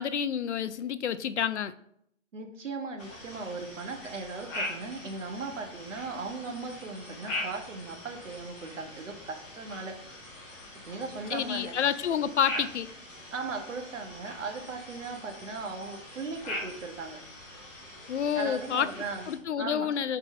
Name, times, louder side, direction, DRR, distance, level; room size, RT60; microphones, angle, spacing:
voice 1, 0.0-1.7 11.3-12.9 18.1-18.9 19.3-20.2, left 8 dB, 60° left, 14 dB, 0.5 m, -29 dB
voice 2, 2.3-9.9 10.9-11.8 12.5-12.7 13.3-17.2 18.3-19.3 19.6-19.9, right 4 dB, 70° right, 4 dB, 1.4 m, -38 dB
sound 1, 3.0-19.4, left 1 dB, 5° left, 0.6 m, -42 dB
4.4 x 4.1 x 5.3 m, 0.72 s
hypercardioid pair, 155°, 39 cm